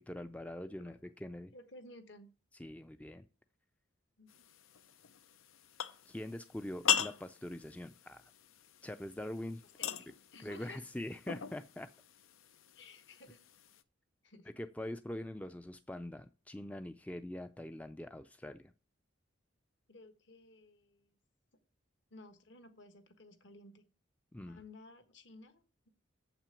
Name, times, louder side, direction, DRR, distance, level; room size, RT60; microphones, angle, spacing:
voice 1, 0.0-1.5 2.6-3.2 6.1-8.2 8.8-9.6 10.4-11.9 14.6-18.6 24.3-24.6, left 1 dB, 5° left, 9 dB, 0.4 m, -43 dB
voice 2, 1.5-2.3 4.2-4.5 9.8-10.8 12.7-13.4 14.2-14.5 19.9-21.0 22.1-23.8 24.4-25.9, left 2 dB, 60° left, 9 dB, 1.4 m, -55 dB
sound 1, 4.3-13.8, left 9 dB, 90° left, 0.7 m, -40 dB
7.6 x 6.0 x 6.9 m, 0.36 s
head